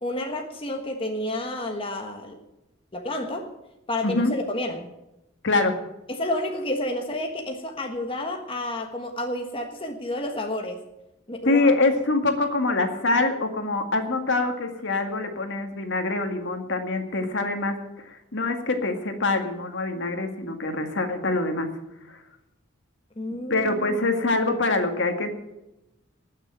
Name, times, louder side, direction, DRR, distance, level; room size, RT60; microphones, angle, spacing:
voice 1, 0.0-2.4 2.9-3.5 3.9-4.9 6.1-10.8 11.3-11.7 23.2-24.2, left 1 dB, 25° left, 3 dB, 1.4 m, -30 dB
voice 2, 4.0-4.3 5.4-5.8 11.4-17.8 18.1-21.7 22.1-22.2 23.5-25.3, left 2 dB, 60° left, 5 dB, 2.0 m, -24 dB
19.5 x 6.6 x 9.0 m, 0.92 s
head